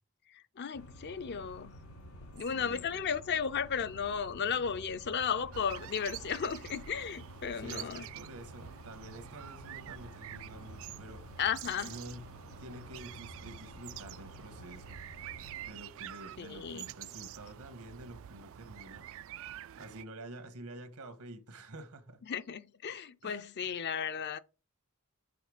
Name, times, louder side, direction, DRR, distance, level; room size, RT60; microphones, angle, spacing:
voice 1, 0.3-1.7 2.3-8.1 11.4-11.9 16.4-16.9 22.3-24.4, left 7 dB, 50° left, 0.5 m, -35 dB
sound 1, 0.7-15.7, equal, 85° left, 4.2 m, -51 dB
voice 2, 2.3-2.9 7.5-11.2 11.8-12.2 12.6-15.0 15.6-19.0 19.8-22.2 23.2-23.4, right 1 dB, 85° right, 1.5 m, -48 dB
sound 2, 5.5-20.0, right 12 dB, 60° right, 0.3 m, -47 dB
7.8 x 4.2 x 5.0 m
head